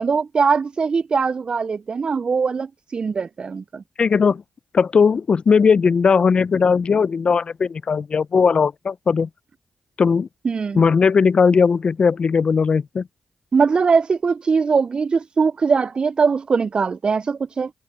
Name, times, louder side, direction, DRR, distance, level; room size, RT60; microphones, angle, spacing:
voice 1, 0.0-3.8 10.4-10.9 13.5-17.7, right 5 dB, 50° right, 0.4 m, -21 dB
voice 2, 4.0-4.4 4.7-9.3 10.0-10.3 10.7-13.1, left 5 dB, 55° left, 0.6 m, -18 dB
supercardioid pair, 45°, 2 cm